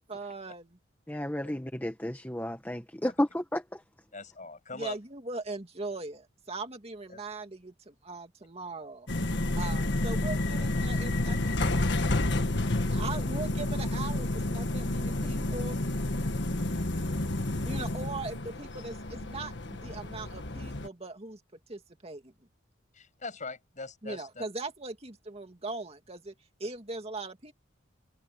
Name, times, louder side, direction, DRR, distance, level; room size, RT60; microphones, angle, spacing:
voice 1, 0.1-0.7 4.7-9.1 9.6-11.9 12.9-15.8 17.7-21.4 21.7-22.3 24.0-26.3 26.6-27.5, right 3 dB, 30° right, 2.4 m, -40 dB
voice 2, 1.1-3.8, left 1 dB, 10° left, 1.4 m, -32 dB
voice 3, 4.1-5.0 7.1-7.2 22.9-24.4, left 3 dB, 40° left, 7.4 m, -42 dB
sound 1, 9.1-20.9, left 2 dB, 60° left, 1.6 m, -30 dB
head